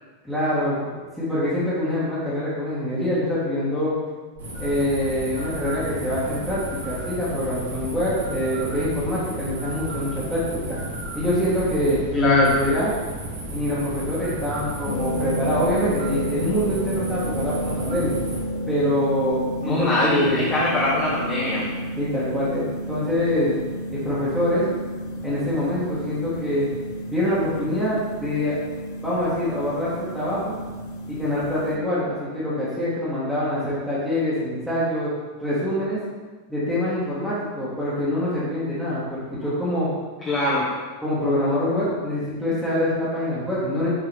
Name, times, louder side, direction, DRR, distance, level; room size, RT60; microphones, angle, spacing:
voice 1, 0.2-0.9 1.2-3.9 4.6-10.8 11.1-12.9 13.5-18.2 18.7-20.5 22.0-23.6 23.9-24.7 25.2-26.7 27.1-28.5 29.0-30.6 31.1-35.1 35.4-36.0 36.5-39.9 41.0-43.9, left 1 dB, ahead, -12 dB, 1.8 m, -25 dB
sound 1, 4.4-18.4, right 1 dB, 65° right, 1.8 m, -33 dB
voice 2, 12.1-12.5 19.6-21.7 40.3-40.7, left 2 dB, 30° left, -8 dB, 1.5 m, -22 dB
sound 2, 14.9-31.8, equal, 45° left, 0.8 m, -31 dB
7.2 x 4.6 x 3.5 m, 1.3 s
figure-of-eight pair, 90°, 0 cm